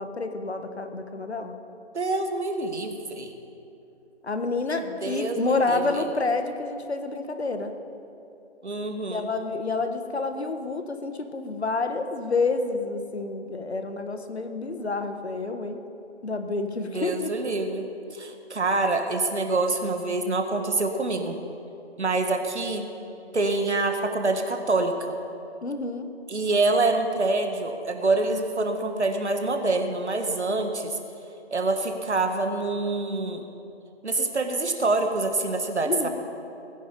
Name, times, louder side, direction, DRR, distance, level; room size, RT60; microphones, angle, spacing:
voice 1, 0.0-1.5 4.2-7.8 9.1-15.8 16.2-17.3 25.6-26.1 35.8-36.1, left 3 dB, 65° left, 7 dB, 1.5 m, -29 dB
voice 2, 1.9-3.3 5.0-6.0 8.6-9.3 16.8-21.4 22.0-22.9 23.3-25.1 26.3-31.0 31.5-33.4 34.0-36.1, right 2 dB, 75° right, 5 dB, 1.8 m, -26 dB
19.5 x 9.9 x 5.4 m, 2.8 s
figure-of-eight pair, 180°, 35 cm